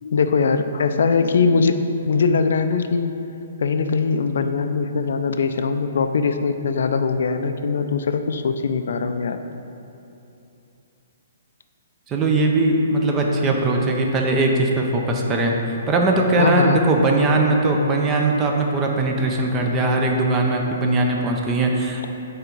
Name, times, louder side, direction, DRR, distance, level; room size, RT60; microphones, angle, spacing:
voice 1, 0.0-1.8 2.1-3.1 3.6-9.4 16.4-16.8, left 5 dB, 65° left, 8 dB, 0.3 m, -21 dB
voice 2, 12.1-15.5 15.9-22.1, right 2 dB, 15° right, 1 dB, 0.5 m, -20 dB
7.8 x 3.5 x 4.4 m, 2.8 s
hypercardioid pair, 170°, 0 cm